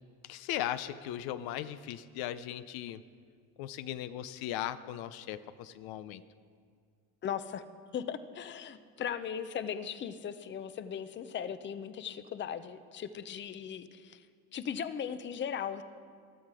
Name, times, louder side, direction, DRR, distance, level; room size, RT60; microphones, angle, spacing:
voice 1, 0.2-3.0 3.6-6.2, left 12 dB, 70° left, 13 dB, 0.6 m, -38 dB
voice 2, 7.2-7.6 7.9-14.2 14.5-15.8, left 8 dB, 30° left, 12 dB, 0.6 m, -38 dB
15.0 x 12.5 x 4.8 m, 2.1 s
cardioid pair, 110°, 38 cm